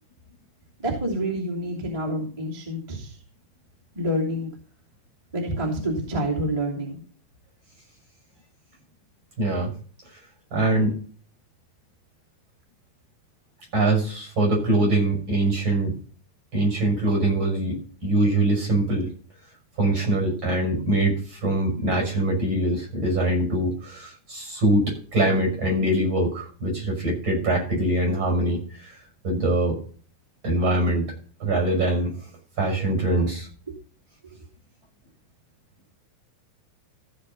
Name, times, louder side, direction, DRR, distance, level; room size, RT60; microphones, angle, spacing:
voice 1, 0.8-3.2 3.9-4.5 5.3-7.0 33.7-33.8, right 1 dB, 10° right, -4 dB, 2.7 m, -27 dB
voice 2, 9.4-9.7 10.5-10.9 13.7-15.9 16.5-19.1 19.8-29.8 30.4-31.1 31.4-32.1 32.6-33.5, right 1 dB, 40° right, 1 dB, 7.0 m, -23 dB
15.5 x 5.6 x 5.4 m, 0.42 s
omnidirectional pair, 3.4 m